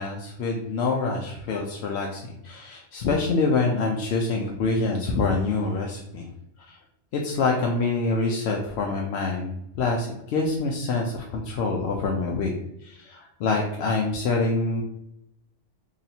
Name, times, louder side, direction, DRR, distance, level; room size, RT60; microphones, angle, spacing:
voice 1, 0.0-6.3 6.7-6.8 7.1-12.5 12.8-14.8, left 3 dB, 65° left, 0 dB, 0.8 m, -26 dB
3.0 x 2.8 x 4.1 m, 0.81 s
omnidirectional pair, 1.2 m